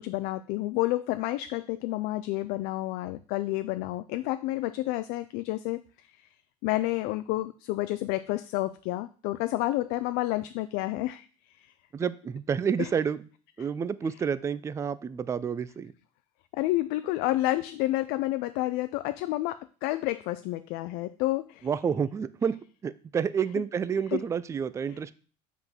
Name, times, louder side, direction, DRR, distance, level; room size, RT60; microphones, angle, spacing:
voice 1, 0.0-5.8 6.1-6.3 6.6-11.7 12.8-12.9 16.5-21.7 24.1-24.2, left 17 dB, 65° left, 11 dB, 0.4 m, -30 dB
voice 2, 11.9-13.3 13.6-15.9 21.6-22.6 22.8-25.1, right 7 dB, 15° right, 15 dB, 0.3 m, -29 dB
5.5 x 3.8 x 6.0 m, 0.41 s
supercardioid pair, 115°, 18 cm